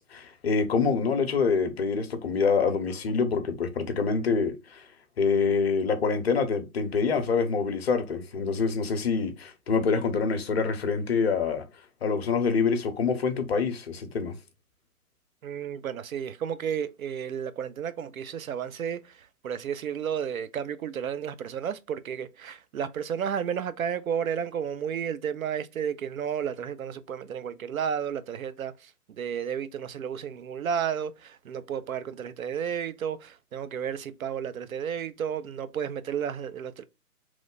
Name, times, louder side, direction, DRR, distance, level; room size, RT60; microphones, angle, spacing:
voice 1, 0.0-4.8 5.2-11.6 12.0-14.3, left 5 dB, 45° left, 0.6 m, -26 dB
voice 2, 15.4-36.8, right 8 dB, 65° right, 0.5 m, -32 dB
3.1 x 2.1 x 3.6 m
figure-of-eight pair, 135°, 44 cm